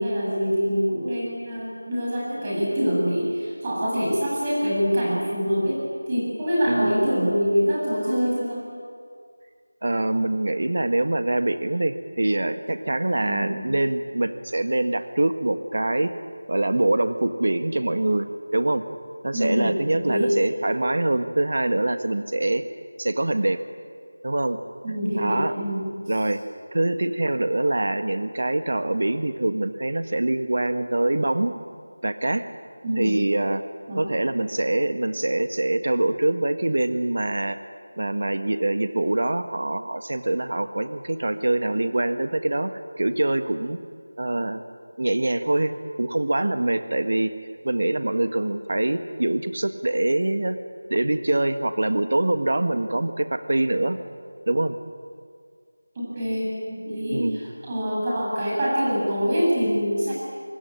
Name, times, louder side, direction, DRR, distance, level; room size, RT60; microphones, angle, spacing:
voice 1, 0.0-5.8 6.1-8.7 13.2-13.7 19.3-20.3 24.8-25.9 32.8-33.2 33.9-34.1 55.9-60.1, equal, 20° right, -5 dB, 7.6 m, -25 dB
voice 2, 9.8-16.1 16.5-18.8 19.2-22.6 23.0-23.6 24.2-24.6 24.9-25.5 26.1-26.4 26.7-31.5 32.0-32.5 33.0-33.6 34.0-37.6 38.0-42.7 43.0-43.8 44.2-44.6 45.0-47.3 47.6-50.6 50.9-54.0 54.5-54.8 57.1-57.4, right 2 dB, 55° right, 9 dB, 1.6 m, -24 dB
25.0 x 23.5 x 9.9 m, 2.1 s
figure-of-eight pair, 175°, 0 cm